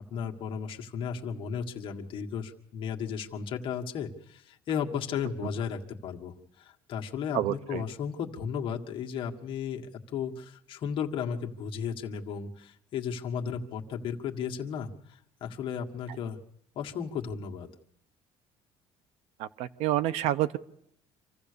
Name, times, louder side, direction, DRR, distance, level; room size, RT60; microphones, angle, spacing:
voice 1, 0.1-16.4 16.8-17.7, left 7 dB, 50° left, 1 dB, 1.7 m, -35 dB
voice 2, 7.3-7.8 19.4-20.6, right 13 dB, 75° right, 15 dB, 0.8 m, -28 dB
26.5 x 15.0 x 6.8 m, 0.74 s
cardioid pair, 145°, 11 cm